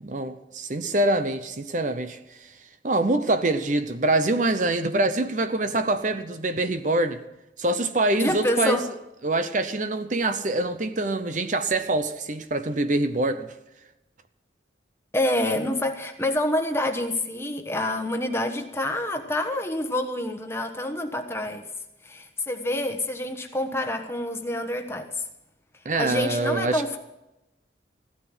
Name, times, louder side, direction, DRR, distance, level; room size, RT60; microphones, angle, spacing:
voice 1, 0.0-2.5 2.8-7.2 7.6-8.8 9.2-13.5 25.8-26.8, right 2 dB, 40° right, 10 dB, 0.7 m, -25 dB
voice 2, 8.2-8.9 15.1-21.6 22.0-25.2 25.9-27.0, left 1 dB, 15° left, 6 dB, 1.2 m, -27 dB
15.5 x 12.5 x 6.1 m, 0.94 s
head